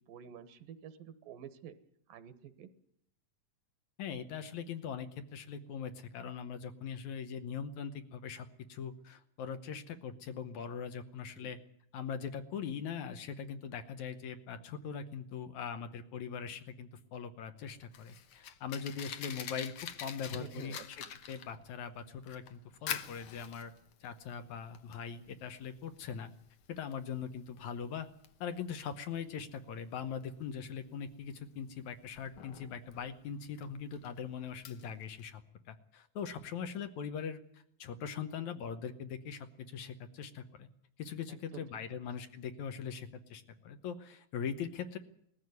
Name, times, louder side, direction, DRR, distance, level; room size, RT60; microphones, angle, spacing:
voice 1, 0.1-1.7 2.1-2.7 11.4-11.5 20.3-20.9 41.3-41.6 41.9-42.0, right 9 dB, 80° right, 12 dB, 2.9 m, -49 dB
voice 2, 4.0-11.6 11.9-23.7 24.0-26.3 26.7-28.1 28.4-35.4 35.7-40.7 41.0-45.0, left 7 dB, 65° left, 9 dB, 2.1 m, -41 dB
Fire, 17.6-35.3, left 9 dB, 85° left, 1.2 m, -47 dB
19.5 x 14.5 x 9.5 m, 0.71 s
omnidirectional pair, 4.0 m